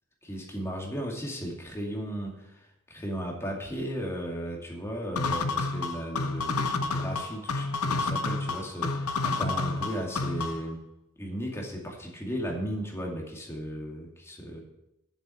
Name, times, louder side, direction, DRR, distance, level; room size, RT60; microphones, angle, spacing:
voice 1, 0.2-2.5 2.9-10.8 11.2-14.6, equal, 10° left, -1 dB, 2.4 m, -35 dB
sound 1, 5.2-10.7, left 3 dB, 85° left, 0.8 m, -30 dB
7.6 x 7.5 x 7.9 m, 0.84 s
head